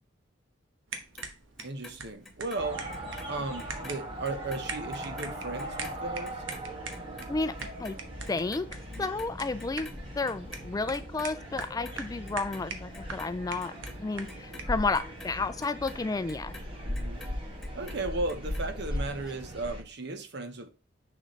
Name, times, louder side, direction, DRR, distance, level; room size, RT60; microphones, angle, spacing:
Clock, 0.9-3.3 3.6-10.0 10.2-11.3 11.6-12.6 12.9-17.3 17.6-18.6 19.0-19.1, left 2 dB, ahead, 2.0 m, -49 dB
sound 1, 0.9-14.8, right 4 dB, 80° right, 1.2 m, -44 dB
voice 1, 1.6-2.8 3.2-6.4 9.0-9.3 16.8-17.2 17.7-20.7, right 2 dB, 65° right, 1.0 m, -36 dB
sound 2, 2.6-19.8, equal, 30° right, 1.9 m, -39 dB
voice 2, 8.3-8.7 9.0-9.9 10.2-13.7 14.0-16.5, left 3 dB, 20° left, 0.3 m, -31 dB
6.5 x 6.2 x 3.2 m
head